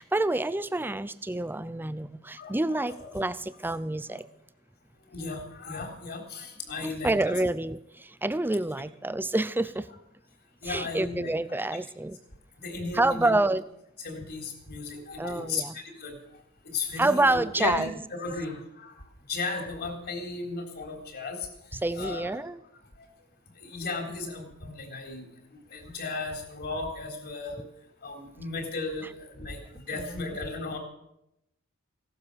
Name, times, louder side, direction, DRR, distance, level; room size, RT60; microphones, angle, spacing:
voice 1, 0.0-4.2 6.8-9.9 10.6-12.2 12.9-13.6 15.2-15.8 17.0-17.9 21.7-22.6 30.0-30.3, right 2 dB, 10° right, 15 dB, 0.5 m, -28 dB
voice 2, 2.4-3.1 4.1-4.2 5.1-7.3 10.6-11.6 12.6-13.4 14.0-16.1 16.7-17.9 18.2-18.9 19.3-21.4 21.9-22.4 23.6-25.2 25.7-27.6 28.0-29.6 29.9-30.8, left 3 dB, 50° left, 4 dB, 3.8 m, -35 dB
17.5 x 12.5 x 6.8 m, 0.82 s
head